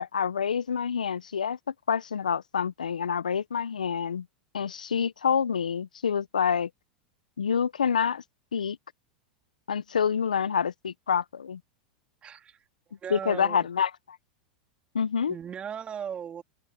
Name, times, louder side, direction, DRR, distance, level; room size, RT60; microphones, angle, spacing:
voice 1, 0.0-1.6 1.9-4.2 4.5-6.7 7.4-8.2 8.5-8.8 9.7-11.6 13.1-14.2 14.9-15.4, left 7 dB, 85° left, 0.8 m, -27 dB
voice 2, 12.2-12.6 13.0-13.7 15.3-16.4, right 8 dB, 30° right, 3.3 m, -37 dB
open air
hypercardioid pair, 95°, 4 cm